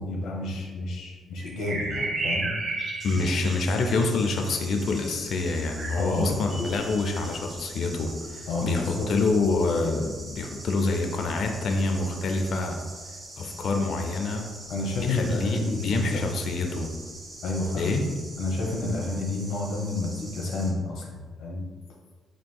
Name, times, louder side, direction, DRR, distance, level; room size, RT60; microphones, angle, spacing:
voice 1, 0.0-2.5 3.1-3.3 6.0-6.5 8.5-9.1 14.7-16.4 17.4-17.9 18.4-21.6, left 2 dB, 80° left, -1 dB, 0.9 m, -30 dB
sound 1, 1.4-3.9 5.8-5.9, right 3 dB, 50° right, 0.9 m, -31 dB
voice 2, 3.0-12.8 13.4-14.5 15.0-16.9 17.8-18.1, left 3 dB, 65° left, 4 dB, 0.5 m, -26 dB
sound 2, 3.0-20.7, right 1 dB, 30° right, 1.5 m, -43 dB
sound 3, 6.5-7.4, left 2 dB, ahead, 0.5 m, -38 dB
4.8 x 3.8 x 2.3 m, 1.5 s
cardioid pair, 90°, 0 cm